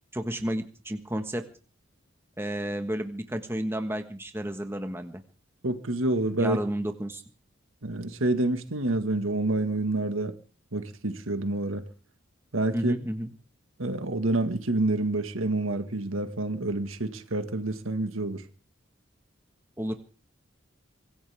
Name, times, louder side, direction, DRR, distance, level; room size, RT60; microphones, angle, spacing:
voice 1, 0.1-1.5 2.4-5.2 6.4-7.2 12.7-13.3 19.8-20.0, right 1 dB, 10° right, 1.4 m, -31 dB
voice 2, 5.6-6.6 7.8-10.4 10.7-11.8 12.5-12.9 13.8-18.4, right 2 dB, 90° right, 1.8 m, -28 dB
24.5 x 15.5 x 3.5 m
head